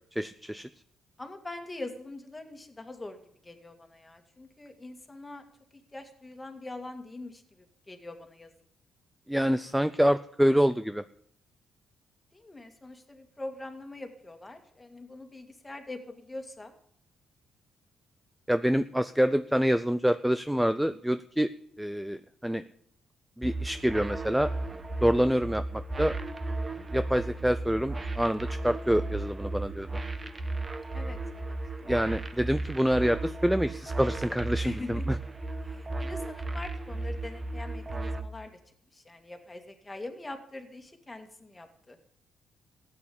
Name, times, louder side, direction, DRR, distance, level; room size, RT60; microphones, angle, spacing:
voice 1, 0.2-0.7 9.3-11.0 18.5-21.5 21.8-22.6 23.4-24.5 25.0-26.2 26.9-29.9 31.9-35.2, equal, 5° right, 12 dB, 0.5 m, -26 dB
voice 2, 1.2-3.2 3.4-5.4 5.9-7.4 7.9-8.5 12.3-16.7 30.9-31.5 31.8-32.0 34.6-35.0 35.6-38.5 38.9-42.0, left 2 dB, 15° left, 5 dB, 2.3 m, -43 dB
sound 1, 23.4-38.2, right 2 dB, 25° right, 1.1 m, -35 dB
14.5 x 8.6 x 8.7 m, 0.65 s
cardioid pair, 90°, 0 cm